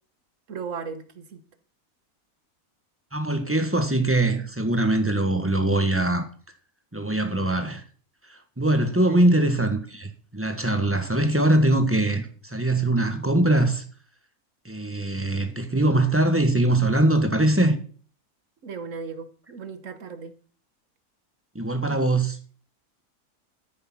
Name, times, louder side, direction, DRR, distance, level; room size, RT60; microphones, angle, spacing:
voice 1, 0.5-1.4 9.0-9.2 18.6-20.3, right 5 dB, 60° right, 1.5 m, -36 dB
voice 2, 3.1-6.3 6.9-7.8 8.6-13.8 14.6-17.8 21.5-22.4, right 1 dB, 10° right, 1.4 m, -22 dB
13.0 x 6.6 x 6.1 m
omnidirectional pair, 1.6 m